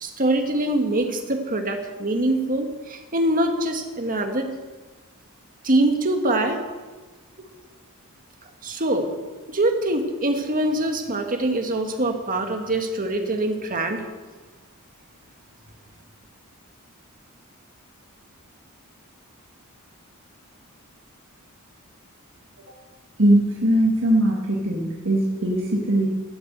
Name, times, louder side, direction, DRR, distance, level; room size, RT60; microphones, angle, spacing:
voice 1, 0.0-4.5 5.6-6.6 8.6-9.1 9.5-14.0, right 1 dB, 40° right, 4 dB, 1.6 m, -24 dB
voice 2, 23.2-26.1, right 1 dB, 60° right, -2 dB, 1.7 m, -20 dB
13.5 x 8.0 x 8.0 m, 1.3 s
head